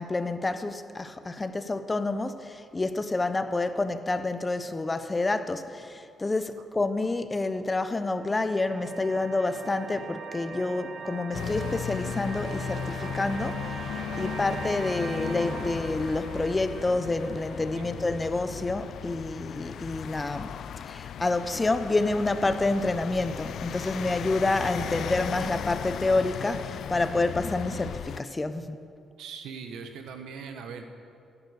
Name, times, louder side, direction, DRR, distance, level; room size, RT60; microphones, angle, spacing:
voice 1, 0.0-20.5 20.8-28.8, left 2 dB, 20° left, 0.9 m, -28 dB
sound 1, 7.9-18.9, right 6 dB, 60° right, 0.9 m, -41 dB
sound 2, 11.3-28.2, left 9 dB, 65° left, 0.3 m, -36 dB
voice 2, 29.2-30.8, right 6 dB, 85° right, 1.4 m, -40 dB
16.0 x 11.0 x 6.6 m
cardioid pair, 90°, 0 cm